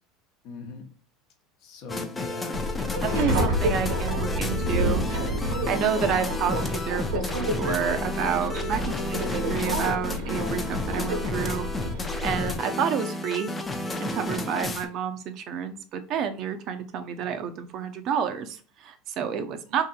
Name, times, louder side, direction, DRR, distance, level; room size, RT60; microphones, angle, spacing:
voice 1, 0.4-0.9 1.6-2.6 3.0-3.5 5.4-5.8 14.2-14.5, left 4 dB, 65° left, 5 dB, 0.7 m, -40 dB
sound 1, 1.9-14.9, left 2 dB, 20° left, 0.5 m, -32 dB
Subway metro underground, 2.5-12.6, equal, 80° right, 0.9 m, -29 dB
voice 2, 3.0-5.1 5.7-11.7 12.2-13.5 14.0-19.8, right 7 dB, 55° right, 9 dB, 0.5 m, -29 dB
2.8 x 2.6 x 2.3 m, 0.41 s
supercardioid pair, 100°, 0 cm